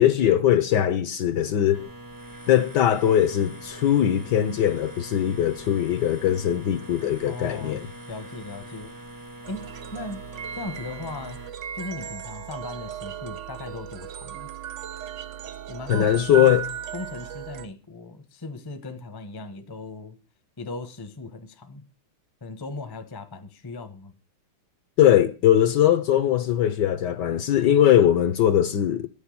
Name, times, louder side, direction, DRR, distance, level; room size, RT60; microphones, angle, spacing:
voice 1, 0.0-1.9 2.5-7.9 15.9-16.6 25.0-29.1, left 11 dB, 65° left, 1.2 m, -20 dB
sound 1, 1.7-11.5, right 1 dB, 20° right, 0.5 m, -43 dB
voice 2, 7.2-8.9 9.5-10.2 10.6-11.4 11.7-14.5 15.7-16.5 16.9-20.2 20.6-21.8 22.4-24.1, left 3 dB, 20° left, 0.6 m, -37 dB
sound 2, 9.4-17.7, right 9 dB, 80° right, 0.6 m, -36 dB
10.0 x 7.1 x 8.5 m
omnidirectional pair, 2.3 m